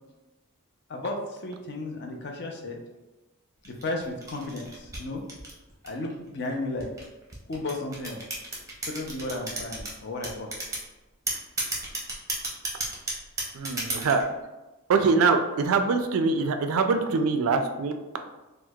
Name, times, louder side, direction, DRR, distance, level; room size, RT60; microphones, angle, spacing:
voice 1, 0.9-2.8 3.6-5.2 5.8-6.9 7.5-8.2 8.8-10.5, left 2 dB, 50° left, 2 dB, 0.5 m, -34 dB
sound 1, 3.6-6.1 6.8-9.9 10.2-10.9 11.3-14.2, right 2 dB, 15° right, 0.6 m, -32 dB
voice 2, 13.5-14.2 14.9-17.9, right 4 dB, 70° right, 7 dB, 0.3 m, -23 dB
4.4 x 2.0 x 2.3 m, 1.1 s
head